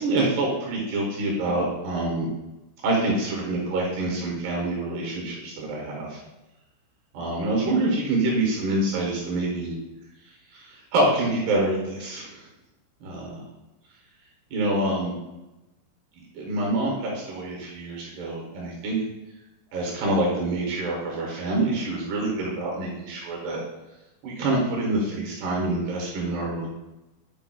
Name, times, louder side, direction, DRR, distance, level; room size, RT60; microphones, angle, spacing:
voice 1, 0.0-2.3 2.8-6.2 7.1-9.7 10.5-12.4 13.1-13.3 14.5-15.1 16.2-19.0 19.7-23.6 24.2-26.7, right 2 dB, 70° right, -2 dB, 2.8 m, -26 dB
9.0 x 4.6 x 2.3 m, 1.0 s
omnidirectional pair, 5.8 m